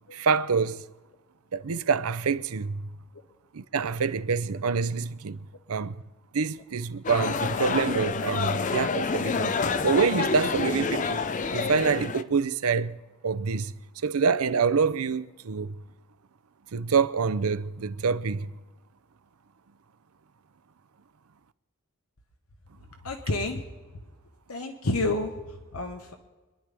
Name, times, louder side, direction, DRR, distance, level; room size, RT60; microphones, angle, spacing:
voice 1, 0.1-0.8 1.5-2.9 3.5-5.4 5.7-6.0 6.3-9.6 9.8-11.2 11.5-13.0 13.2-13.7 14.0-15.8 16.7-18.5, right 5 dB, 85° right, 0.6 m, -26 dB
sound 1, 7.0-12.2, left 4 dB, 35° left, 0.5 m, -28 dB
voice 2, 23.0-23.7 24.5-26.1, left 2 dB, 85° left, 1.2 m, -30 dB
25.5 x 11.0 x 3.5 m
head